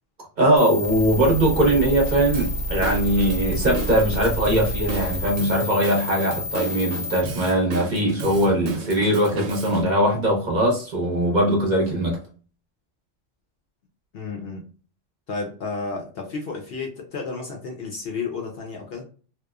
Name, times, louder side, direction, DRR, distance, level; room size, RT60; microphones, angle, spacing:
voice 1, 0.4-12.2, right 1 dB, 45° right, 0.8 m, -21 dB
sound 1, 0.6-7.2, left 1 dB, 80° left, 1.1 m, -29 dB
Drum kit / Drum, 2.3-9.8, right 4 dB, 85° right, 1.0 m, -35 dB
voice 2, 14.1-14.7 15.3-19.0, left 4 dB, 60° left, 0.7 m, -32 dB
2.8 x 2.1 x 2.2 m
omnidirectional pair, 1.3 m